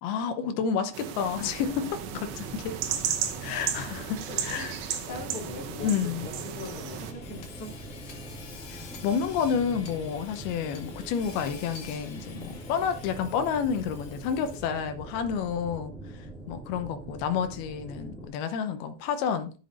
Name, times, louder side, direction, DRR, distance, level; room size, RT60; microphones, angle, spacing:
voice 1, 0.0-2.8 3.4-4.8 5.8-6.3 8.7-15.9 16.5-19.5, left 7 dB, 85° left, 2.8 m, -30 dB
sound 1, 0.9-7.1, right 9 dB, 80° right, 2.8 m, -34 dB
sound 2, 1.2-18.3, right 1 dB, 5° left, 0.4 m, -43 dB
voice 2, 1.6-1.9 4.3-4.7 5.1-7.7, left 3 dB, 45° left, 3.0 m, -41 dB
Hammer / Sawing, 6.6-14.8, left 5 dB, 60° left, 2.6 m, -48 dB
12.0 x 7.3 x 2.5 m
omnidirectional pair, 4.4 m